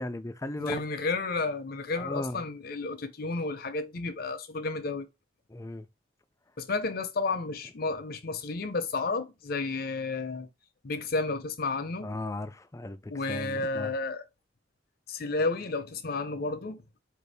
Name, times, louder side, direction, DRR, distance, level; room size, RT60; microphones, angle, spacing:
voice 1, 0.0-0.8 2.0-2.4 5.5-5.8 12.0-13.9, left 2 dB, 15° left, 0.3 m, -36 dB
voice 2, 0.6-5.1 6.6-10.5 10.8-12.1 13.1-14.3 15.1-16.8, left 3 dB, 55° left, 0.6 m, -32 dB
4.5 x 2.7 x 3.4 m
head